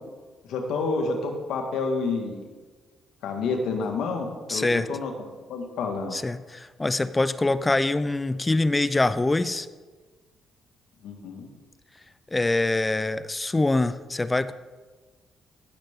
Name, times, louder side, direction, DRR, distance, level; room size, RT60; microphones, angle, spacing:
voice 1, 0.5-2.4 3.2-5.1 5.5-6.2 11.0-11.5, left 4 dB, 80° left, 3 dB, 1.7 m, -29 dB
voice 2, 4.5-4.9 6.1-9.7 12.3-14.5, left 2 dB, 20° left, 15 dB, 0.4 m, -24 dB
16.5 x 6.9 x 3.7 m, 1.4 s
cardioid pair, 90°, 0 cm